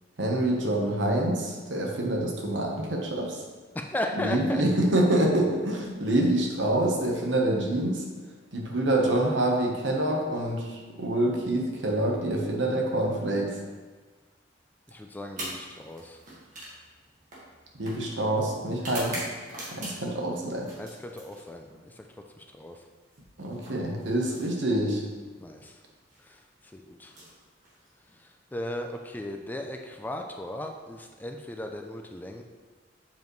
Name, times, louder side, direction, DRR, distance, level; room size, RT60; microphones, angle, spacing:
voice 1, 0.2-3.4 4.2-8.0 8.5-13.6 17.8-19.2 19.7-20.7 23.4-25.0, right 1 dB, 75° right, 0 dB, 1.1 m, -26 dB
voice 2, 3.7-4.6 14.9-16.2 20.8-22.1 22.4-22.8 25.4-25.8 26.2-27.1 28.1-32.4, left 1 dB, 10° left, 3 dB, 0.3 m, -36 dB
sound 1, 15.3-20.2 20.6-21.8 23.0-24.9 25.9-26.2 27.0-28.2, right 1 dB, 40° right, 1.7 m, -42 dB
7.1 x 5.2 x 3.1 m, 1.4 s
head